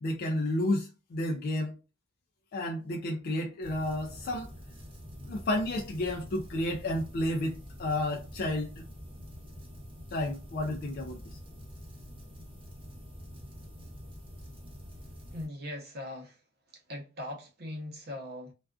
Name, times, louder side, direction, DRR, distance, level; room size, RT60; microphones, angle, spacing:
voice 1, 0.0-1.7 2.5-4.5 5.3-8.8 10.1-11.4, left 1 dB, 50° left, 0.3 m, -31 dB
sound 1, 3.6-15.5, equal, 25° right, 0.9 m, -46 dB
voice 2, 15.3-16.4 16.7-18.5, left 1 dB, 50° right, 0.7 m, -40 dB
2.3 x 2.3 x 2.3 m
head